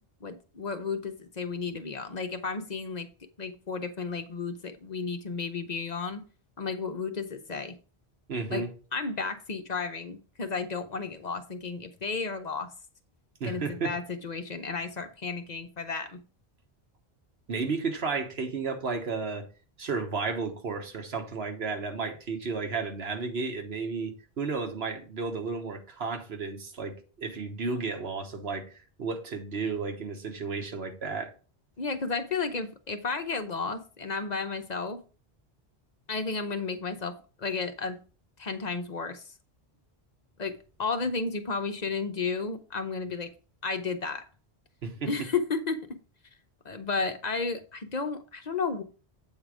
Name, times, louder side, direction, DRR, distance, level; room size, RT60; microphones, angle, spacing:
voice 1, 0.0-3.1 3.4-6.2 6.6-7.7 8.5-8.6 8.9-12.7 13.5-16.2 31.8-35.0 36.1-37.1 37.4-38.0 38.4-39.3 40.4-43.3 43.6-44.2 45.1-46.0 46.6-48.8, left 4 dB, 45° left, 0.8 m, -33 dB
voice 2, 8.3-8.7 9.0-9.1 9.8-9.9 13.4-14.0 17.5-19.5 19.8-28.7 29.0-31.3 43.7-43.8 44.8-45.1, right 4 dB, 85° right, 1.4 m, -33 dB
8.0 x 3.8 x 4.8 m
omnidirectional pair, 1.0 m